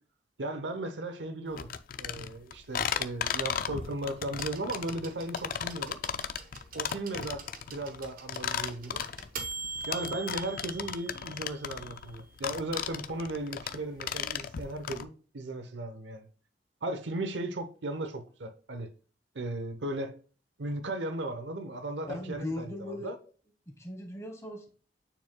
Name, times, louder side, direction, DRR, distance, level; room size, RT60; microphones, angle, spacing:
voice 1, 0.4-1.7 2.0-6.0 6.7-9.0 9.9-16.3 16.8-18.9 19.3-20.2 20.6-23.1, right 2 dB, 85° right, 0.9 m, -36 dB
sound 1, 1.6-15.0, left 8 dB, 50° left, 0.4 m, -35 dB
sound 2, 4.4-12.1 13.3-13.4, right 4 dB, 55° right, 0.8 m, -44 dB
voice 2, 22.1-23.1 23.7-24.7, left 1 dB, 15° left, 1.3 m, -38 dB
9.0 x 4.6 x 2.3 m
head